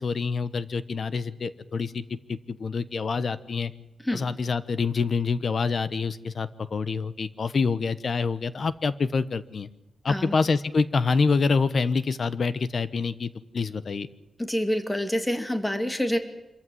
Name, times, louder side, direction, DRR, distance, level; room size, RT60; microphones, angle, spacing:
voice 1, 0.0-2.0 2.3-3.7 4.1-9.7 10.0-14.1, left 4 dB, 50° left, 15 dB, 1.1 m, -26 dB
voice 2, 14.5-16.2, equal, 10° left, 7 dB, 2.3 m, -27 dB
26.0 x 15.0 x 9.3 m, 0.99 s
wide cardioid pair, 140°, 0 cm